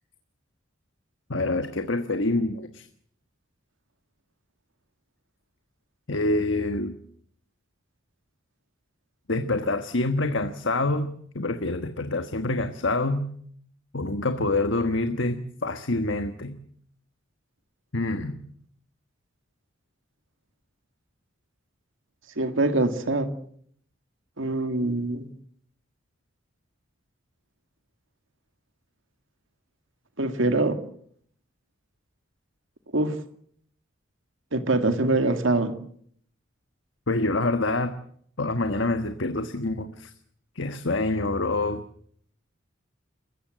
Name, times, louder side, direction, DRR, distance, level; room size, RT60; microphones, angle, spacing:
voice 1, 1.3-2.9 6.1-7.0 9.3-13.3 13.9-16.6 17.9-18.4 37.1-37.9 38.4-40.1 40.5-41.8, left 2 dB, 65° left, 8 dB, 1.4 m, -26 dB
voice 2, 22.4-23.3 24.4-25.3 30.2-30.8 32.9-33.2 34.5-35.7, right 2 dB, 70° right, 7 dB, 2.0 m, -24 dB
27.5 x 16.0 x 7.8 m, 0.63 s
head